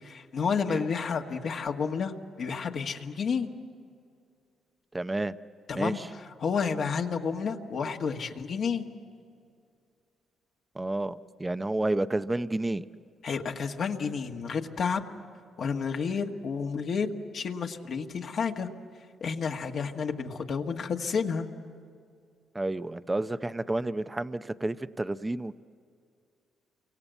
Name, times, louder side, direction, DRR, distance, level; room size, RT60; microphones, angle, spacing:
voice 1, 0.0-2.1 2.4-3.5 5.7-6.0 6.4-8.8 13.2-15.0 15.6-18.7 19.2-21.5, left 5 dB, 60° left, 2 dB, 1.6 m, -30 dB
voice 2, 4.9-5.3 5.8-6.1 10.8-12.8 22.5-25.6, right 2 dB, 15° right, 12 dB, 0.6 m, -30 dB
29.0 x 24.0 x 8.1 m, 2.3 s
cardioid pair, 100°, 0 cm